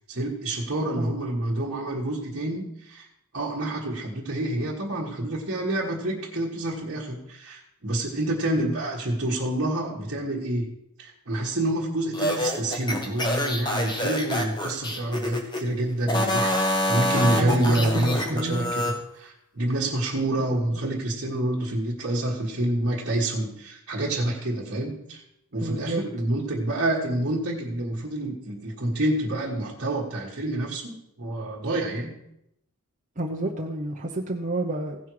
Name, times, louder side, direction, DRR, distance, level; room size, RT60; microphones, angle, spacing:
voice 1, 0.1-3.1 3.3-10.7 11.0-25.2 25.5-32.1, right 1 dB, 50° right, -6 dB, 1.5 m, -28 dB
voice 2, 8.3-8.7 17.2-18.7 20.4-20.8 25.6-26.0 33.2-35.0, right 1 dB, 35° right, -1 dB, 0.8 m, -31 dB
sound 1, 12.1-15.6 16.0-18.9, left 1 dB, 20° left, 1.2 m, -26 dB
16.0 x 5.6 x 4.7 m, 0.79 s
head